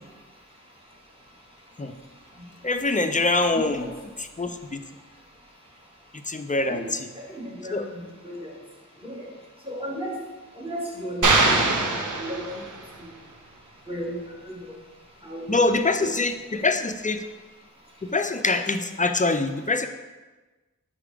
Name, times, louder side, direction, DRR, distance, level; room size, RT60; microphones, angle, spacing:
voice 1, 2.6-3.9 4.2-4.8 6.2-7.1 7.7-7.8 15.5-17.3 18.0-19.9, left 3 dB, 25° left, 7 dB, 0.4 m, -24 dB
voice 2, 3.5-3.9 6.7-6.9 7.2-7.9 8.2-8.5 9.1-9.2 9.7-10.2 10.6-11.4 11.6-12.4 13.9-14.2 14.4-14.6 15.2-15.4 16.0-16.1, equal, 15° right, -3 dB, 1.6 m, -34 dB
sound 1, 11.2-13.0, right 3 dB, 70° right, 0.7 m, -22 dB
5.6 x 4.9 x 3.4 m, 1.2 s
wide cardioid pair, 45°, 31 cm